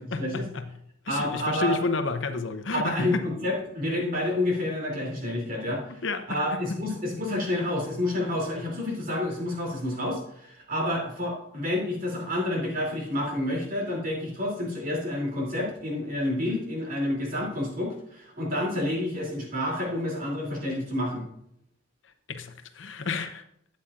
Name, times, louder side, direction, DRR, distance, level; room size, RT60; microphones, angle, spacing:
voice 1, 0.1-0.7 1.0-3.2 6.0-6.5 22.3-23.4, left 3 dB, 65° left, 8 dB, 0.8 m, -30 dB
voice 2, 1.1-1.7 2.7-5.8 6.3-21.2, left 1 dB, 45° right, -2 dB, 3.0 m, -29 dB
13.0 x 8.6 x 2.5 m, 0.74 s
head